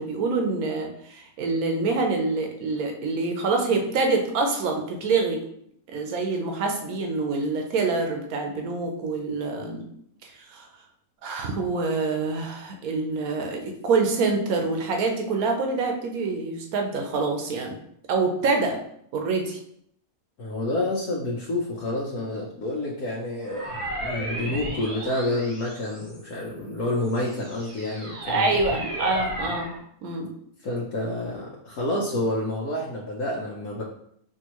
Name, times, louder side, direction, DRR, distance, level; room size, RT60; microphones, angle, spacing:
voice 1, 0.0-5.4 5.9-9.9 10.2-10.7 11.2-17.7 18.1-18.8 19.1-19.6 28.3-29.7 30.0-30.3, right 3 dB, 80° right, 3 dB, 1.2 m, -26 dB
voice 2, 20.4-28.5 30.6-33.8, left 1 dB, 85° left, -5 dB, 1.4 m, -29 dB
sound 1, 23.4-26.4 26.9-29.8, equal, 30° right, 0.8 m, -34 dB
6.0 x 2.7 x 3.0 m, 0.70 s
omnidirectional pair, 1.5 m